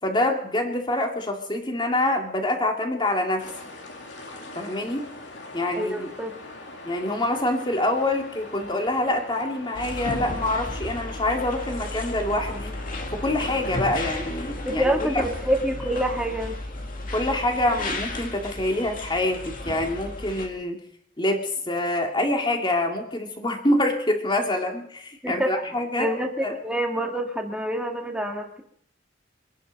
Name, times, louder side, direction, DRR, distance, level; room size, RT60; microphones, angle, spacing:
voice 1, 0.0-3.5 4.6-5.1 5.5-6.1 6.8-12.8 13.1-15.2 17.1-20.8 21.2-26.1 26.4-26.6, left 1 dB, 25° left, 3 dB, 2.3 m, -26 dB
sound 1, 3.4-14.2, left 2 dB, 65° left, 2.7 m, -42 dB
voice 2, 5.8-6.4 14.6-16.6 25.2-25.5 26.0-28.6, right 1 dB, 5° right, 2 dB, 2.0 m, -26 dB
sound 2, 9.7-20.5, left 2 dB, 45° left, 2.3 m, -34 dB
25.0 x 11.0 x 5.3 m, 0.63 s
head